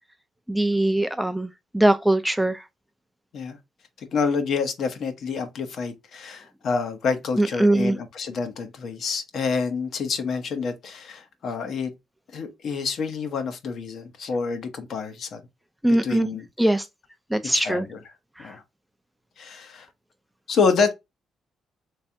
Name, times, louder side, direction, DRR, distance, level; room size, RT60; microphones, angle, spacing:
voice 1, 0.5-2.6 7.4-8.0 15.8-16.9 17.3-17.9 18.4-18.5, right 1 dB, 5° right, 0.4 m, -22 dB
voice 2, 4.0-11.9 12.3-15.4 16.0-16.4 17.5-18.0 18.4-18.6 19.4-19.9 20.5-20.9, left 5 dB, 65° left, 0.9 m, -27 dB
3.3 x 3.3 x 2.6 m
cardioid pair, 90°, 0 cm